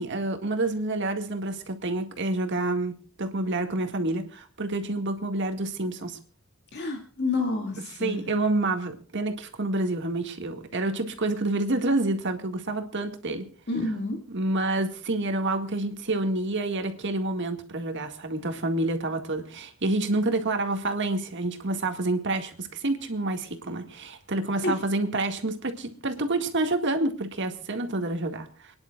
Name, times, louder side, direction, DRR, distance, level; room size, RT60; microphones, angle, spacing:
voice 1, 0.0-6.2 8.0-13.4 14.3-28.7, right 2 dB, 60° right, 5 dB, 1.9 m, -28 dB
voice 2, 6.7-8.3 13.7-14.2 24.6-24.8, left 3 dB, 55° left, 2 dB, 2.3 m, -29 dB
29.0 x 10.5 x 2.4 m, 0.41 s
head